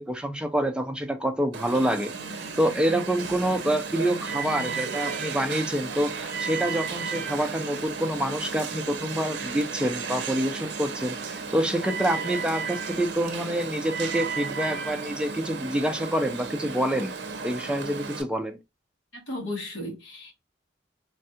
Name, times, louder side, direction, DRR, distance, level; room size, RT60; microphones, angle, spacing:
voice 1, 0.0-17.1 17.4-18.6, right 1 dB, 5° right, 0.4 m, -27 dB
Alarm, 1.5-18.2, right 5 dB, 65° right, 0.6 m, -34 dB
voice 2, 19.1-20.3, left 1 dB, 85° left, 1.3 m, -35 dB
3.3 x 2.3 x 2.7 m
head